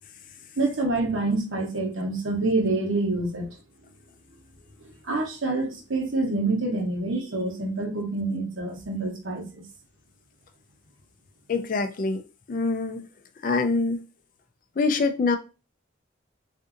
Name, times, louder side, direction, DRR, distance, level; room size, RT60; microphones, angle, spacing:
voice 1, 0.6-3.5 5.0-9.6, right 2 dB, 80° right, 1.0 m, -27 dB
voice 2, 11.5-12.2 12.5-13.0 13.4-14.0 14.8-15.4, left 3 dB, 40° left, 0.4 m, -24 dB
3.7 x 2.6 x 2.5 m
head